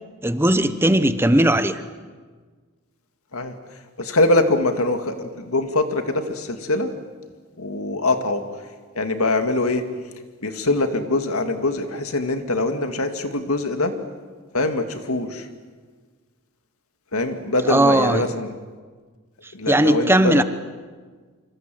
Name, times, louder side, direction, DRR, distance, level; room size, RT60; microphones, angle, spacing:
voice 1, 0.2-1.8 17.7-18.3 19.4-20.4, right 1 dB, 10° right, 11 dB, 0.9 m, -18 dB
voice 2, 4.0-6.9 7.6-8.4 9.0-9.8 10.4-14.0 14.5-15.5 17.1-18.6 19.5-20.4, left 2 dB, 85° left, 6 dB, 2.3 m, -23 dB
27.0 x 26.0 x 7.8 m, 1.5 s
head